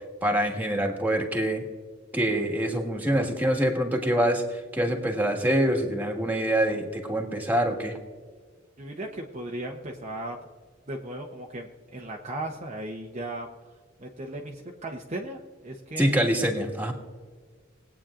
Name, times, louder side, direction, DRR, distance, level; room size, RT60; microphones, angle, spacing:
voice 1, 0.2-1.6 2.1-8.0 16.0-16.9, right 1 dB, 10° right, 3 dB, 1.7 m, -25 dB
voice 2, 8.8-10.4 10.9-13.7 14.0-16.3, right 1 dB, 35° right, 0 dB, 0.8 m, -36 dB
20.5 x 8.9 x 2.5 m, 1.5 s
head